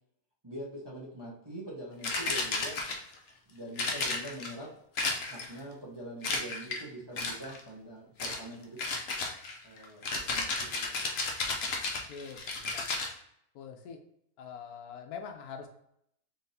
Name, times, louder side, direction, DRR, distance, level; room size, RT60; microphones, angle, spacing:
voice 1, 0.4-2.8 3.5-4.7 5.3-8.8 9.6-11.0, right 1 dB, 25° right, -6 dB, 0.6 m, -44 dB
sound 1, 2.0-3.2 3.8-4.5 5.0-5.6 6.2-6.8 7.2-7.6 8.2-8.4 8.8-13.1, left 3 dB, 60° left, 0.7 m, -33 dB
voice 2, 12.1-12.9 13.5-14.0 14.4-15.7, left 6 dB, 80° left, 5 dB, 1.1 m, -44 dB
3.9 x 3.3 x 2.6 m, 0.74 s
omnidirectional pair, 1.6 m